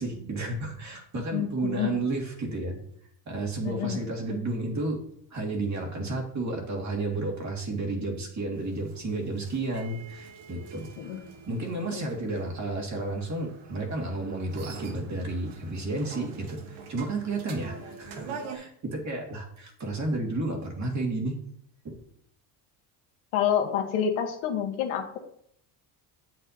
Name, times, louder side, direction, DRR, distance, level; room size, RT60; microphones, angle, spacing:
voice 1, 0.0-2.8 3.3-5.0 5.3-21.4 21.8-22.0, right 2 dB, 35° right, 1 dB, 2.1 m, -32 dB
voice 2, 1.1-1.9 3.6-4.0 4.3-4.4 11.0-11.2 11.8-12.1 23.3-25.2, left 9 dB, 80° left, 4 dB, 1.4 m, -28 dB
sound 1, 8.5-18.6, right 5 dB, 75° right, 1.4 m, -45 dB
7.7 x 7.5 x 2.8 m, 0.68 s
cardioid pair, 115°, 49 cm